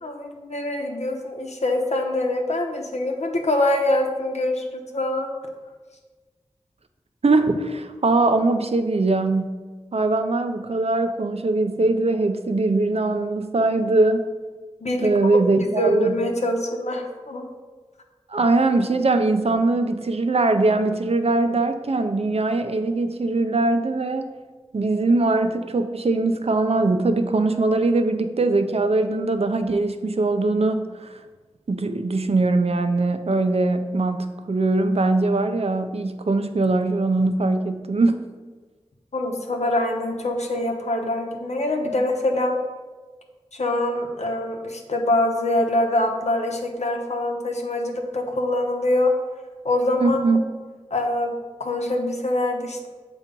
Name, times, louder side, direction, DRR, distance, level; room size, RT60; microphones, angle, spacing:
voice 1, 0.0-5.3 14.8-15.1 15.6-17.5 39.1-42.5 43.5-49.1 49.6-50.2 50.9-51.3 51.6-52.9, left 1 dB, 85° left, 2 dB, 0.8 m, -24 dB
voice 2, 7.2-9.5 9.9-14.2 15.0-16.2 18.3-24.3 24.7-31.1 31.7-38.2 50.0-50.4, right 2 dB, 65° right, 8 dB, 0.5 m, -21 dB
7.0 x 3.0 x 5.2 m, 1.4 s
wide cardioid pair, 40°, 11 cm